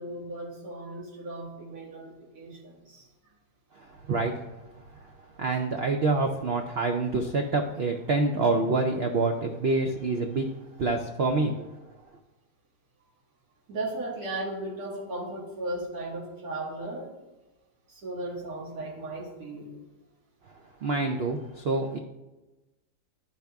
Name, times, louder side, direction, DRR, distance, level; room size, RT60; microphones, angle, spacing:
voice 1, 0.0-3.1 13.7-17.1 17.9-19.7, right 2 dB, 60° right, -4 dB, 2.2 m, -36 dB
voice 2, 5.4-10.5 10.8-11.5 20.8-22.0, right 3 dB, 90° right, 4 dB, 0.5 m, -26 dB
11.5 x 4.6 x 3.5 m, 1.0 s
omnidirectional pair, 1.8 m